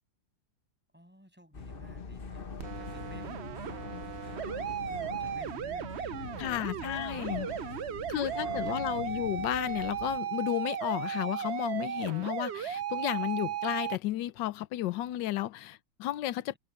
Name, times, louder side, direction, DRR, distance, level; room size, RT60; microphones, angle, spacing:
voice 1, 0.9-7.7 8.1-9.3 11.2-11.3, equal, 5° right, 6.9 m, -55 dB
sound 1, 1.5-10.2, left 5 dB, 35° left, 1.2 m, -43 dB
sound 2, 2.6-14.0, right 9 dB, 65° right, 0.6 m, -36 dB
voice 2, 6.4-7.5 8.1-16.6, left 14 dB, 75° left, 1.4 m, -33 dB
omnidirectional pair, 2.0 m